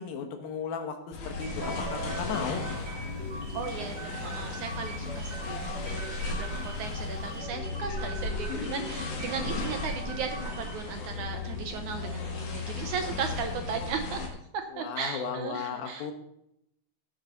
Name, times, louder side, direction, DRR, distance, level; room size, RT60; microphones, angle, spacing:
voice 1, 0.0-2.6 14.7-16.1, left 6 dB, 80° left, 5 dB, 3.1 m, -35 dB
sound 1, 1.1-14.3, left 4 dB, 60° left, 3.2 m, -35 dB
sound 2, 1.3-10.9, right 2 dB, 20° right, 1.3 m, -43 dB
Guitar, 1.6-7.1, right 2 dB, 45° right, 2.7 m, -46 dB
voice 2, 3.5-5.6 5.9-14.2 14.8-16.1, right 7 dB, 75° right, 6 dB, 1.9 m, -36 dB
17.5 x 6.2 x 4.0 m, 0.79 s
omnidirectional pair, 4.1 m